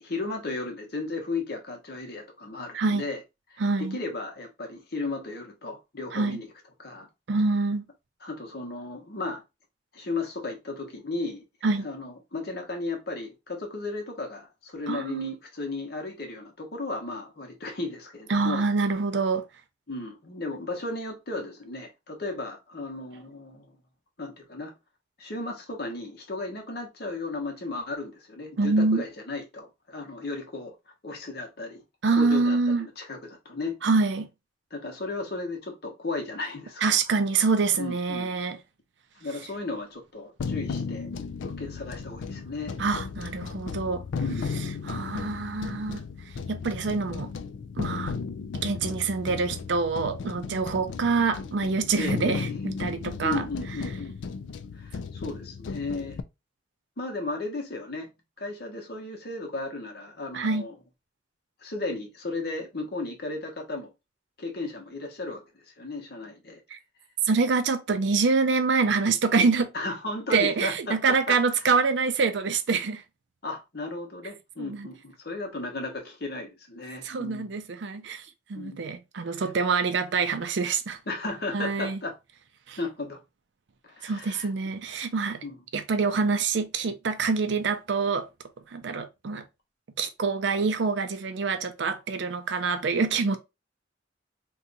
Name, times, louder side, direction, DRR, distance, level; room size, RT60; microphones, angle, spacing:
voice 1, 0.0-3.2 3.5-6.5 6.8-7.1 8.2-9.4 9.9-11.4 11.8-18.6 19.9-23.8 24.2-24.7 25.2-30.7 31.0-31.8 32.1-33.8 34.7-37.0 37.8-38.4 39.1-41.1 41.4-42.8 44.2-44.6 51.9-52.4 53.2-54.1 54.7-56.2 57.0-58.1 58.4-60.7 61.6-63.9 64.4-66.6 69.7-71.7 73.4-77.5 78.5-78.8 79.3-79.5 81.1-82.2 82.8-83.2 83.8-84.5 85.4-85.6, left 3 dB, 60° left, 1.0 m, -35 dB
voice 2, 3.6-4.0 6.1-6.4 7.3-7.8 11.6-11.9 14.9-15.3 18.3-19.4 28.6-29.0 32.0-32.9 33.8-34.3 36.8-38.6 42.8-44.0 44.8-46.0 46.5-47.3 47.8-48.2 48.5-53.4 60.3-60.6 66.7-66.8 67.3-69.7 70.3-73.0 74.6-74.9 77.0-78.2 78.5-81.0 81.5-82.0 82.7-82.8 84.0-85.4 85.7-88.3 88.7-89.4 90.0-93.4, right 4 dB, 75° right, 0.5 m, -26 dB
sound 1, 40.4-56.2, left 5 dB, 90° left, 0.4 m, -35 dB
2.7 x 2.3 x 3.9 m
head